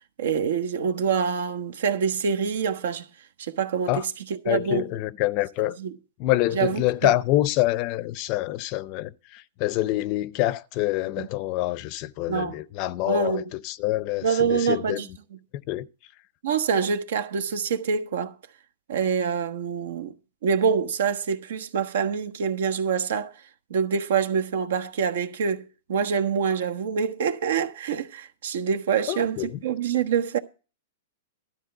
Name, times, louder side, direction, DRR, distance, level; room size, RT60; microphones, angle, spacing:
voice 1, 0.2-3.1 3.4-4.9 5.6-6.0 6.5-7.2 11.2-11.3 12.3-12.6 13.0-13.5 14.2-15.4 16.4-18.3 18.9-20.1 20.4-23.3 23.7-30.4, right 6 dB, 75° right, 1.3 m, -26 dB
voice 2, 4.5-5.8 6.2-9.1 9.6-15.0 15.7-15.9 29.1-29.5, left 16 dB, 35° left, 0.6 m, -26 dB
13.0 x 4.3 x 7.8 m
supercardioid pair, 155°, 0 cm